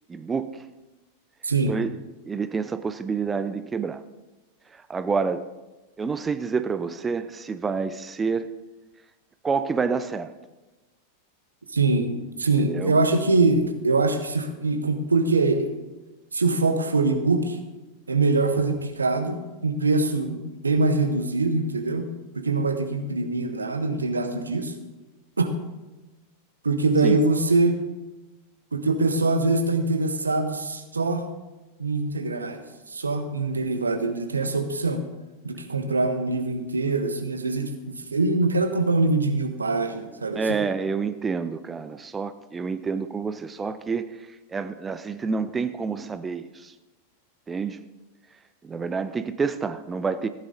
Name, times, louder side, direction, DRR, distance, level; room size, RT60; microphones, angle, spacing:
voice 1, 0.1-0.6 1.7-1.9 2.2-4.0 4.7-5.5 6.0-8.5 9.4-10.3 12.7-13.0 27.0-27.2 40.3-46.7 47.5-47.8 48.6-50.3, right 5 dB, 15° right, 12 dB, 0.4 m, -28 dB
voice 2, 1.4-1.8 11.7-15.7 16.3-17.6 18.1-22.1 22.4-24.7 25.4-25.5 26.6-27.7 28.7-31.2 31.8-32.6 32.9-35.0 35.4-40.4, right 3 dB, 75° right, 7 dB, 1.1 m, -23 dB
15.0 x 9.8 x 3.8 m, 1.1 s
figure-of-eight pair, 90°, 0 cm